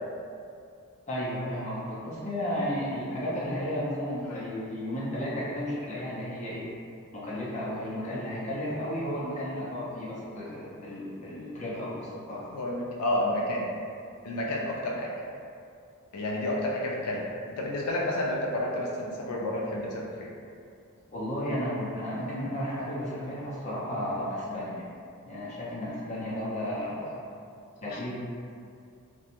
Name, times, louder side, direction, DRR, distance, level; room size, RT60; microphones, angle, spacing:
voice 1, 1.1-6.6 7.1-12.4 21.1-24.9 25.3-27.1 27.8-28.1, equal, 30° left, -7 dB, 0.5 m, -33 dB
voice 2, 12.5-13.7 14.2-15.1 16.1-20.3 27.9-28.0, left 1 dB, 85° left, -2 dB, 0.4 m, -30 dB
2.5 x 2.2 x 2.8 m, 2.4 s
head